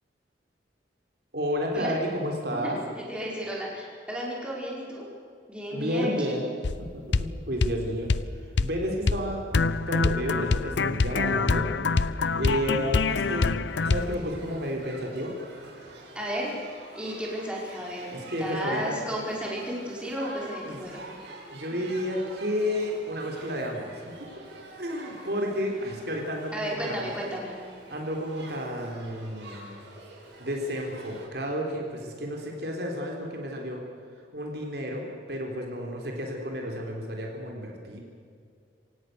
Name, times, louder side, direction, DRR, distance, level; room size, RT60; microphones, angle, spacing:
voice 1, 1.3-2.8 5.7-6.5 6.8-8.1 8.4-11.7 12.4-13.6 13.8-15.3 18.1-19.0 20.6-20.8 21.5-24.0 24.8-27.1 27.9-29.8 30.4-33.8 34.3-38.0, equal, 60° right, 1 dB, 3.6 m, -31 dB
voice 2, 2.6-5.1 5.5-6.4 16.1-16.5 17.0-21.0 26.5-27.5, equal, 5° right, -3 dB, 5.2 m, -33 dB
sound 1, 6.6-6.8 7.1-7.3 7.6-7.8 8.1-8.3 8.6-8.7 9.1-9.2 9.5-14.1, left 4 dB, 75° left, 0.7 m, -25 dB
Shout / Human group actions, 13.6-31.2, right 2 dB, 75° right, 6.5 m, -47 dB
27.5 x 17.0 x 6.8 m, 2.3 s
head